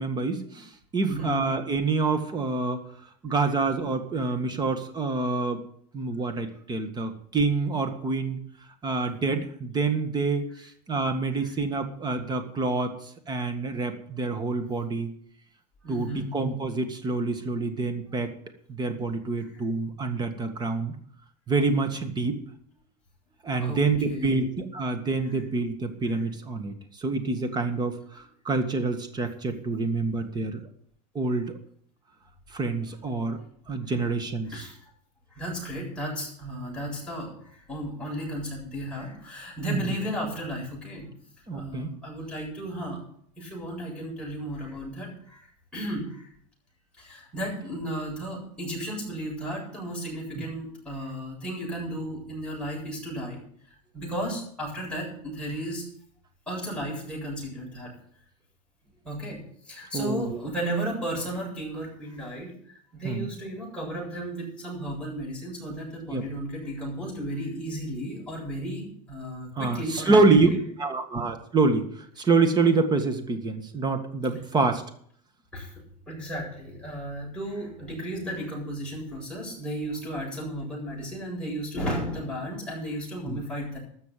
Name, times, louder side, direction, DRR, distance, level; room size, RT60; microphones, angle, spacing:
voice 1, 0.0-2.8 3.2-5.6 5.9-8.4 8.8-10.4 10.9-12.9 13.3-15.1 15.9-18.3 18.7-20.9 21.5-22.4 23.4-30.6 31.2-31.6 32.5-33.4 33.7-34.7 39.7-39.8 41.5-41.9 50.4-50.5 59.9-60.4 63.0-63.3 66.1-66.3 69.6-70.5 70.8-71.9 72.2-74.8 83.3-83.4, right 3 dB, 20° right, 7 dB, 1.8 m, -26 dB
voice 2, 1.0-1.4 11.4-11.5 15.8-16.3 23.6-23.8 24.1-24.4 26.1-26.2 34.5-34.8 35.3-41.1 41.5-43.0 43.4-46.3 47.0-53.4 53.9-55.8 56.5-57.9 59.0-59.4 59.7-70.6 75.5-75.7 76.1-83.8, equal, 5° left, -4 dB, 7.7 m, -34 dB
13.5 x 6.9 x 9.2 m, 0.64 s
supercardioid pair, 135°, 21 cm